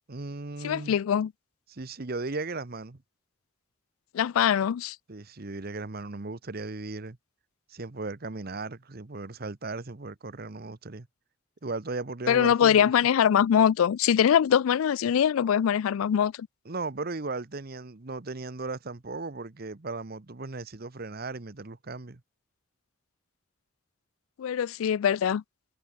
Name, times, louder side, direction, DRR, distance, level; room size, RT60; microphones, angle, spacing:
voice 1, 0.1-1.0 1.7-3.0 5.1-7.2 7.7-11.1 11.6-12.9 16.6-22.2, right 3 dB, 45° right, 1.0 m, -36 dB
voice 2, 0.6-1.3 4.1-5.0 12.3-16.5 24.4-25.4, left 8 dB, 80° left, 0.3 m, -23 dB
head